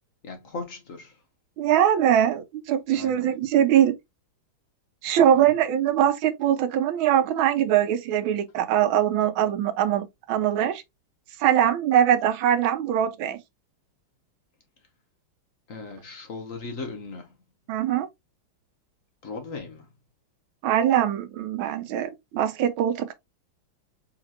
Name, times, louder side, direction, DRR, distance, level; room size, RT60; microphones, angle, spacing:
voice 1, 0.2-1.2 2.9-3.3 5.2-5.5 15.7-17.3 19.2-19.9, left 3 dB, 60° left, 0.8 m, -38 dB
voice 2, 1.6-4.0 5.0-10.8 11.4-13.4 17.7-18.1 20.6-23.1, right 10 dB, 75° right, 1.3 m, -22 dB
4.1 x 2.9 x 2.7 m
omnidirectional pair, 2.4 m